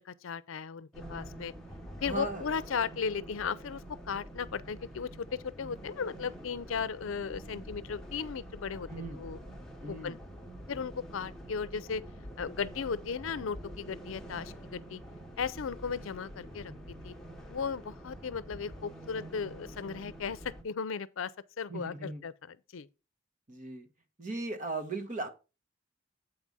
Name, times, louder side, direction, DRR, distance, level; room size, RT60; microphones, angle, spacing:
voice 1, 0.0-1.5 2.0-8.9 9.1-9.4 9.9-10.2 10.7-12.0 12.4-15.0 15.4-16.7 17.0-17.1 17.5-21.3 21.6-22.9, left 6 dB, 80° left, 0.5 m, -36 dB
sound 1, 0.9-20.6, equal, 5° left, 1.1 m, -47 dB
voice 2, 2.0-2.5 8.9-9.2 9.8-10.2 21.7-22.2 23.5-23.9 24.2-25.3, right 2 dB, 40° right, 1.3 m, -37 dB
8.0 x 4.8 x 5.4 m
head